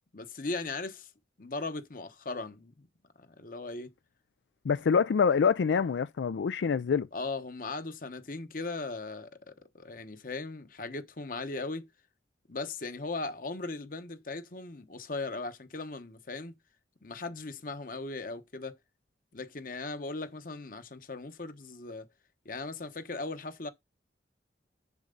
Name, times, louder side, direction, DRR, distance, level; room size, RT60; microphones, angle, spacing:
voice 1, 0.1-1.1 1.4-2.9 3.2-3.9 7.1-11.9 12.5-16.6 17.0-18.8 19.3-22.1 22.4-23.7, left 3 dB, 50° left, 1.0 m, -38 dB
voice 2, 4.6-7.1, left 6 dB, 90° left, 0.4 m, -26 dB
7.3 x 6.5 x 3.8 m
head